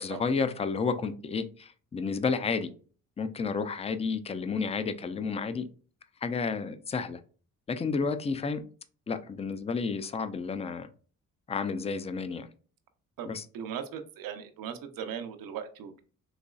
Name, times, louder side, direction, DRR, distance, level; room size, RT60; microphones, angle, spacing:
voice 1, 0.0-2.7 3.2-5.7 6.2-7.2 7.7-8.6 9.1-10.9 11.5-12.5 13.3-13.4, left 5 dB, 20° left, 11 dB, 0.4 m, -31 dB
voice 2, 13.2-16.0, right 8 dB, 90° right, 8 dB, 0.6 m, -39 dB
4.0 x 3.0 x 2.3 m, 0.40 s
cardioid pair, 85°, 33 cm